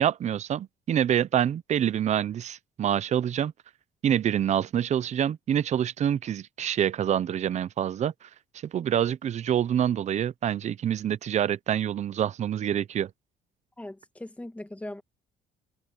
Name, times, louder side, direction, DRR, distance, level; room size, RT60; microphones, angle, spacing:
voice 1, 0.0-3.5 4.0-8.3 8.6-13.1, right 9 dB, 45° right, 0.7 m, -26 dB
voice 2, 13.8-15.0, left 1 dB, 10° left, 2.0 m, -39 dB
cardioid pair, 110°, 17 cm